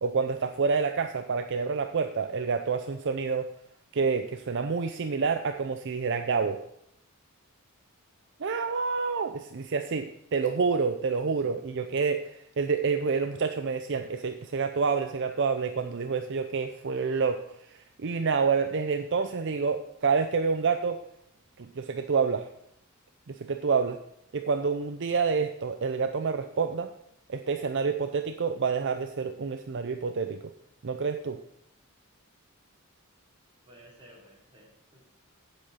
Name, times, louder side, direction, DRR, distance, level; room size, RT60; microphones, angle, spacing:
voice 1, 0.0-3.5 3.9-6.6 8.4-17.4 18.0-21.0 21.8-22.5 23.3-24.0 24.3-26.9 27.3-30.4 30.8-31.4, right 5 dB, 55° right, 7 dB, 0.5 m, -28 dB
voice 2, 33.6-35.1, right 1 dB, 25° right, -4 dB, 3.6 m, -55 dB
8.8 x 7.8 x 5.6 m, 0.77 s
head